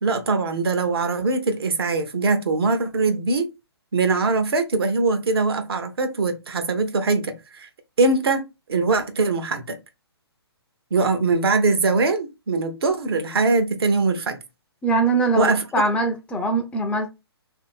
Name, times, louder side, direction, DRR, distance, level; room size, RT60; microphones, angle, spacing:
voice 1, 0.0-3.5 3.9-7.7 8.0-9.8 10.9-14.4 15.4-15.6, right 3 dB, 65° right, 0.8 m, -22 dB
voice 2, 14.8-17.1, right 3 dB, 10° left, 0.4 m, -22 dB
2.7 x 2.6 x 4.2 m
figure-of-eight pair, 130°, 14 cm